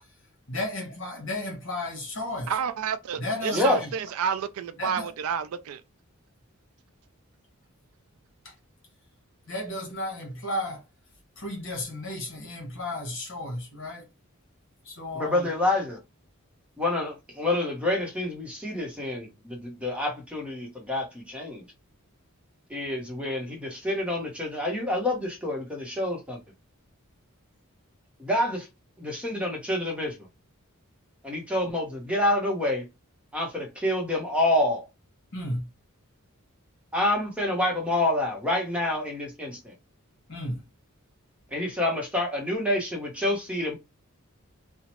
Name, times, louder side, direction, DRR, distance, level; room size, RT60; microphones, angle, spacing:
voice 1, 0.5-2.6 3.2-3.9 4.8-5.1 8.4-8.5 9.5-10.8 11.4-14.0 14.8-15.5 35.3-35.7 40.3-40.6, left 1 dB, 60° left, 1.1 m, -33 dB
voice 2, 2.5-5.8, right 7 dB, 80° right, 0.3 m, -30 dB
voice 3, 3.5-3.8 15.2-16.0 16.8-21.6 22.7-26.4 28.2-28.7 29.0-30.2 31.2-32.8 33.3-34.8 36.9-39.7 41.5-43.8, left 1 dB, 5° right, 0.7 m, -27 dB
2.8 x 2.1 x 2.9 m
head